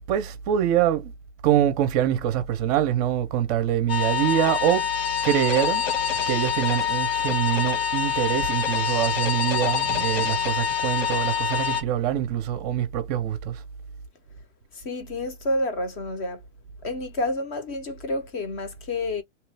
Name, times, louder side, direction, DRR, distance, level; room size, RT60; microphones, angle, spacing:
voice 1, 0.1-1.1 1.4-4.9 5.2-5.9 6.3-13.6, right 11 dB, 35° right, 0.6 m, -24 dB
sound 1, 3.9-11.8, left 8 dB, 85° left, 1.4 m, -26 dB
voice 2, 14.7-16.4 16.8-19.2, left 1 dB, 30° left, 0.6 m, -29 dB
2.8 x 2.3 x 3.2 m
supercardioid pair, 150°, 37 cm